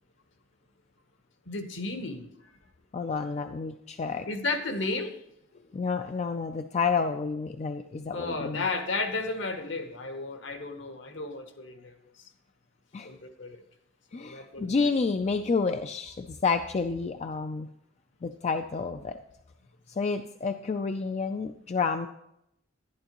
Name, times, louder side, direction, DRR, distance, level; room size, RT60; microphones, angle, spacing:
voice 1, 1.5-2.3 4.3-5.1 8.1-11.8 13.0-13.6 14.2-14.7, left 3 dB, 60° left, 7 dB, 1.0 m, -33 dB
voice 2, 2.9-4.3 5.7-8.6 12.9-13.1 14.1-17.7 18.2-19.2 19.9-22.1, left 4 dB, 35° left, 7 dB, 0.3 m, -29 dB
11.0 x 11.0 x 3.0 m, 0.80 s
head